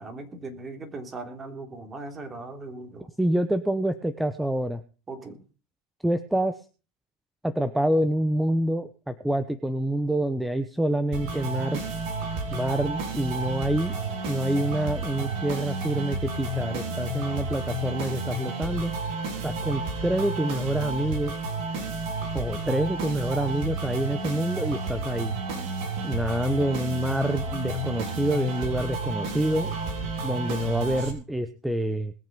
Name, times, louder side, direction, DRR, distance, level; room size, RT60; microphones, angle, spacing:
voice 1, 0.0-3.1 5.1-5.4, right 3 dB, 25° right, 5 dB, 3.4 m, -39 dB
voice 2, 3.2-4.8 6.0-6.6 7.4-11.8 12.5-13.9 14.3-18.9 19.4-21.3 22.3-25.3 26.0-29.7 30.2-32.1, right 1 dB, 5° right, 11 dB, 1.0 m, -27 dB
sound 1, 11.1-31.1, right 3 dB, 60° right, 4.1 m, -31 dB
20.5 x 7.4 x 5.4 m, 0.36 s
hypercardioid pair, 95°, 0 cm